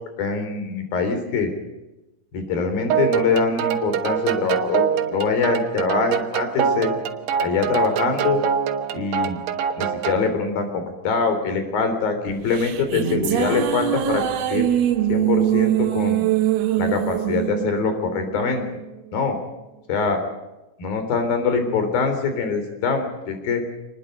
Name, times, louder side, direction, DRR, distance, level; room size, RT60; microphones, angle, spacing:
voice 1, 0.2-1.5 2.3-6.9 7.4-8.4 8.9-9.4 9.8-14.6 15.1-16.3 16.8-18.6 19.1-19.4 19.9-20.2 20.8-23.6, left 5 dB, 65° left, 7 dB, 5.3 m, -23 dB
sound 1, 2.9-10.3, right 8 dB, 90° right, 3.4 m, -24 dB
sound 2, 12.3-18.8, right 12 dB, 75° right, 3.3 m, -23 dB
27.0 x 20.0 x 5.4 m, 1.0 s
omnidirectional pair, 4.6 m